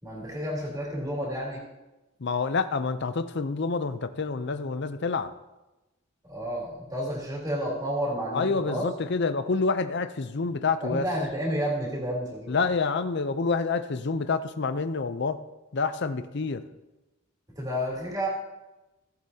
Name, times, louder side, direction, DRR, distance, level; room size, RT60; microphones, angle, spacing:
voice 1, 0.0-1.6 6.3-8.8 10.8-12.7 17.5-18.3, equal, 15° right, -5 dB, 3.4 m, -31 dB
voice 2, 2.2-5.3 8.3-11.0 12.5-15.4 15.7-16.6, left 4 dB, 55° left, 11 dB, 0.6 m, -27 dB
17.5 x 7.7 x 2.8 m, 1.0 s
head